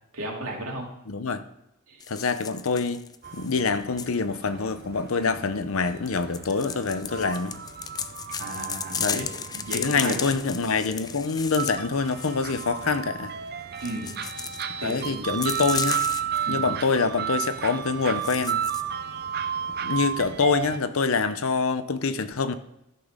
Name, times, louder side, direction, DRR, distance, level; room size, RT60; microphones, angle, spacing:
voice 1, 0.1-0.9 1.9-2.0 5.2-5.4 8.4-10.4 13.8-14.1 14.8-15.4 16.4-16.6, right 1 dB, 70° right, 2.5 m, -35 dB
voice 2, 1.1-1.4 2.1-3.0 3.3-7.5 9.0-9.3 9.7-13.3 14.8-16.0 16.5-18.6 19.8-22.5, left 4 dB, 70° left, 0.7 m, -26 dB
sound 1, 2.0-4.1 6.0-13.0 13.8-16.4 16.8-17.0 17.3-17.5 18.0-18.8, left 7 dB, 20° left, 0.3 m, -35 dB
sound 2, 3.2-20.8, right 8 dB, 45° right, 0.6 m, -33 dB
13.5 x 6.0 x 3.7 m
head